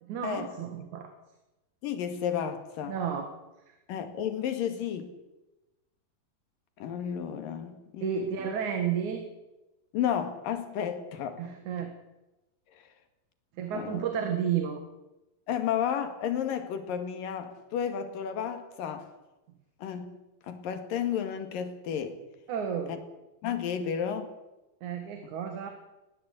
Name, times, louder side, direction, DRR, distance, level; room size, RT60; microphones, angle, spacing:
voice 1, 0.0-1.1 2.9-3.3 3.7-3.8 8.0-9.2 11.4-11.9 13.6-14.8 22.5-23.0 24.8-25.7, right 8 dB, 60° right, 3.2 m, -32 dB
voice 2, 1.8-2.9 3.9-5.1 6.8-8.5 9.9-11.6 13.7-14.0 15.5-19.1 19.8-20.2 20.5-22.2 22.9-23.0 23.4-24.3, left 8 dB, 85° left, 3.7 m, -32 dB
20.5 x 17.0 x 8.4 m
omnidirectional pair, 3.9 m